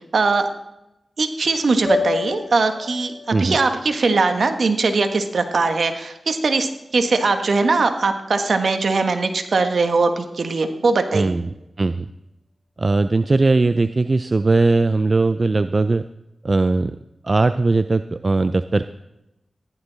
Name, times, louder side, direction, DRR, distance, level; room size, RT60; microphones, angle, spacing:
voice 1, 0.1-0.5 1.2-11.4, right 3 dB, 70° right, 7 dB, 1.4 m, -20 dB
sound 1, 1.9-6.1, left 3 dB, ahead, 5.1 m, -30 dB
voice 2, 11.1-11.5 11.8-12.1 12.8-16.0 16.4-17.0 17.2-18.8, right 3 dB, 45° right, 11 dB, 0.5 m, -19 dB
15.0 x 11.5 x 4.0 m, 0.90 s
cardioid pair, 45°, 0 cm